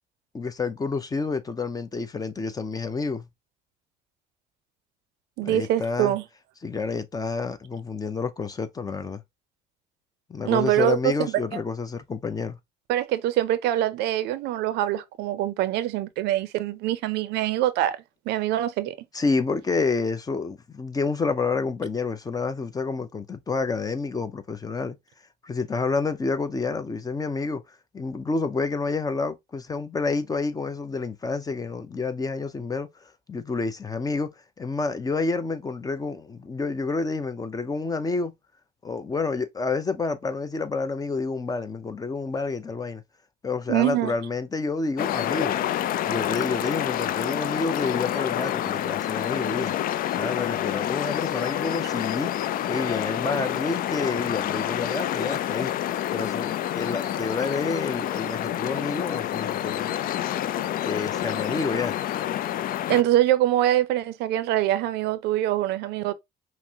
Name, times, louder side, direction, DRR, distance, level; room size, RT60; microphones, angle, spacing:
voice 1, 0.3-3.3 5.4-6.2 6.6-9.2 10.3-12.6 19.1-25.0 25.4-38.3 38.8-43.0 43.4-45.6 46.0-49.7 50.2-52.3 52.7-55.7 56.1-59.9 60.8-62.0, left 4 dB, 20° left, 0.6 m, -29 dB
voice 2, 5.4-6.2 10.5-11.1 12.9-18.0 18.3-18.9 43.7-44.1 62.9-66.1, right 13 dB, 85° right, 0.6 m, -24 dB
sound 1, 45.0-63.0, left 12 dB, 55° left, 0.4 m, -28 dB
5.8 x 2.1 x 2.8 m
cardioid pair, 110°, 17 cm